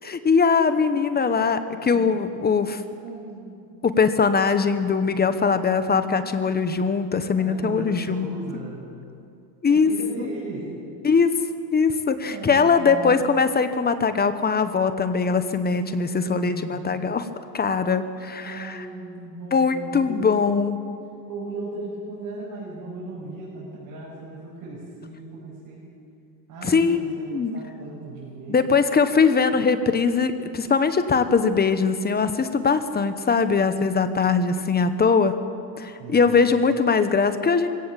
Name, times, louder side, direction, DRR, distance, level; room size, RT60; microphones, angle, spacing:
voice 1, 0.0-2.8 3.8-8.4 9.6-9.9 10.2-10.3 11.0-11.3 11.7-17.3 17.5-18.8 19.5-20.8 26.6-27.0 27.3-27.5 28.5-35.4 35.8-37.7, left 5 dB, 20° left, 11 dB, 1.0 m, -21 dB
voice 2, 3.0-3.6 7.3-8.9 9.7-10.8 12.2-13.1 15.8-16.9 18.4-20.5 21.3-25.9 26.5-28.7 36.0-36.4, right 2 dB, 45° right, -5 dB, 6.6 m, -37 dB
22.5 x 17.0 x 7.5 m, 2.5 s
supercardioid pair, 125°, 48 cm